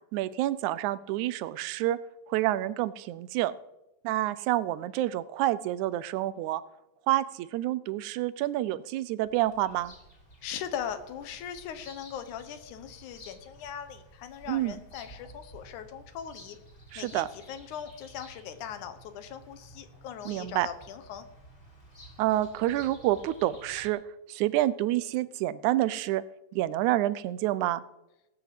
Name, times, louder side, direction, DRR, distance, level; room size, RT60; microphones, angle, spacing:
voice 1, 0.1-2.0 2.3-3.5 4.0-6.6 7.1-9.9 14.5-14.8 16.9-17.3 20.3-20.7 22.2-26.2 26.5-27.8, right 15 dB, 85° right, 17 dB, 2.1 m, -28 dB
Bird vocalization bird call bird song, 9.2-23.9, right 1 dB, 25° left, 3.8 m, -53 dB
voice 2, 10.4-16.6 17.0-21.3, left 9 dB, 85° left, 9 dB, 2.6 m, -40 dB
18.5 x 6.5 x 7.6 m, 0.91 s
omnidirectional pair, 3.4 m